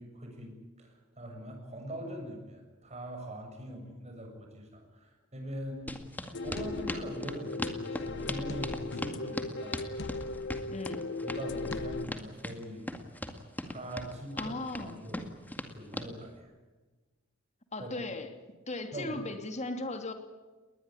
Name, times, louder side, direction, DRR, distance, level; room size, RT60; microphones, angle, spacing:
voice 1, 0.0-5.8 6.4-9.8 11.2-12.9 13.7-14.5 14.8-15.4 15.7-16.5 17.8-17.9 18.9-19.2, equal, 35° right, 3 dB, 7.1 m, -42 dB
sound 1, 5.9-16.1, left 1 dB, 10° left, 2.1 m, -39 dB
sound 2, 6.3-12.1, left 3 dB, 60° left, 0.9 m, -37 dB
voice 2, 10.7-11.1 14.4-15.1 17.7-18.3 18.7-20.1, left 2 dB, 35° left, 7 dB, 2.8 m, -37 dB
21.0 x 20.5 x 9.8 m, 1.3 s
head